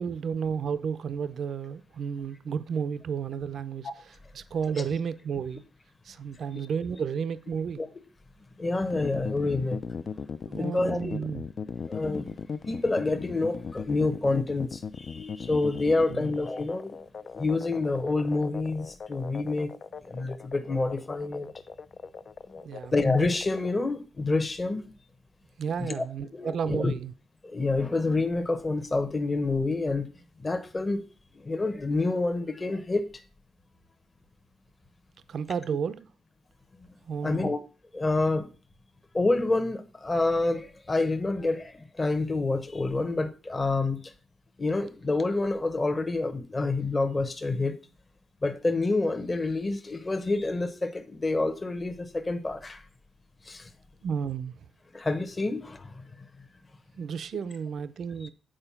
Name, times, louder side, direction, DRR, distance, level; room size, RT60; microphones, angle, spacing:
voice 1, 0.0-3.9 4.3-5.6 6.0-7.8 10.5-11.4 16.1-16.3 22.6-22.9 25.6-27.1 35.3-36.1 37.0-37.5 54.0-54.7 56.9-58.3, right 6 dB, 55° right, 0.5 m, -32 dB
voice 2, 8.6-9.8 10.5-11.2 11.8-12.3 12.6-17.0 17.3-19.7 20.0-21.5 22.9-24.8 25.8-26.0 26.3-26.9 27.4-30.1 30.4-31.0 31.3-33.2 37.2-37.6 37.9-38.5 39.1-44.1 44.6-47.8 48.4-52.8 53.4-53.7 54.9-56.0, left 3 dB, 20° left, 1.0 m, -28 dB
sound 1, 8.9-23.7, left 6 dB, 40° left, 0.4 m, -38 dB
8.9 x 4.4 x 5.7 m
cardioid pair, 140°, 0 cm